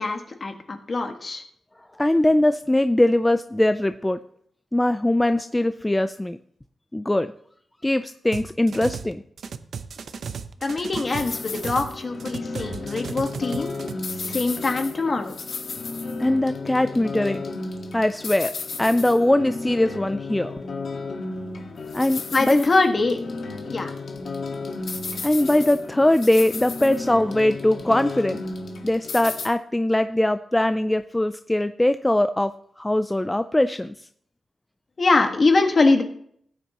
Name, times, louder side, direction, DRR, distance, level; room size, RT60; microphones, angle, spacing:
voice 1, 0.0-1.4 10.6-13.7 14.2-15.3 22.3-23.2 23.6-23.9 35.0-36.0, left 3 dB, 40° left, 4 dB, 1.5 m, -23 dB
voice 2, 2.0-4.2 4.7-6.4 6.9-7.3 7.8-9.2 16.2-17.4 17.9-18.5 18.8-20.6 21.9-22.6 25.2-28.4 28.8-33.9, left 1 dB, 10° left, 10 dB, 0.4 m, -21 dB
sound 1, 8.3-9.1 9.4-11.9 12.2-13.9, right 6 dB, 70° right, 0.7 m, -35 dB
sound 2, 11.0-29.5, left 3 dB, 65° left, 1.5 m, -33 dB
16.0 x 9.0 x 2.9 m, 0.64 s
wide cardioid pair, 110°, 0 cm